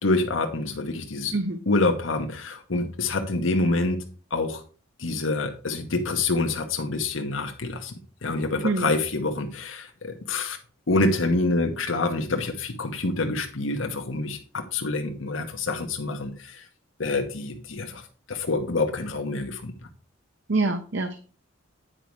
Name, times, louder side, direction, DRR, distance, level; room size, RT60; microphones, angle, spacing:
voice 1, 0.0-1.3 1.7-4.0 4.3-4.6 5.0-7.9 8.2-10.6 10.9-16.6 17.0-18.0 18.3-19.7, left 2 dB, 80° left, 4 dB, 1.0 m, -26 dB
voice 2, 20.5-21.2, right 3 dB, 65° right, 6 dB, 0.8 m, -25 dB
9.0 x 5.3 x 4.6 m, 0.38 s
head